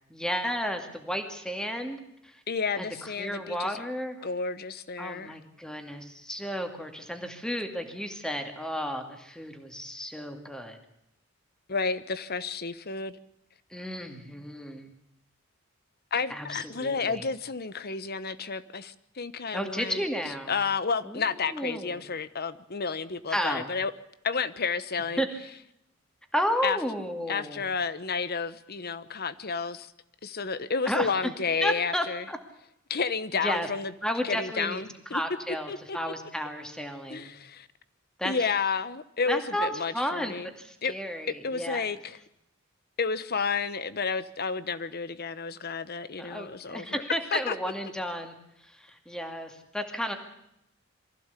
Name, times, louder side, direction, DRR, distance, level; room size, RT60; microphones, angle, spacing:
voice 1, 0.1-2.4 2.8-4.2 5.0-10.8 13.7-14.9 16.3-17.3 19.5-20.6 21.0-22.0 23.3-23.7 25.2-25.3 26.3-27.6 30.9-31.3 31.6-32.4 33.3-33.7 34.0-37.3 38.2-38.3 39.3-41.9 46.2-48.3 48.6-50.2, equal, 5° left, 5 dB, 2.4 m, -33 dB
voice 2, 2.5-3.8 4.2-5.3 11.7-13.1 16.1-20.0 20.5-23.9 24.2-25.2 26.6-26.8 27.3-29.9 30.2-32.2 32.9-33.9 34.2-35.2 35.7-36.0 37.1-37.7 38.2-40.5 40.8-40.9 41.4-42.2 43.0-47.0 47.3-47.5, left 5 dB, 50° left, 15 dB, 1.1 m, -31 dB
23.5 x 15.5 x 8.3 m, 0.81 s
head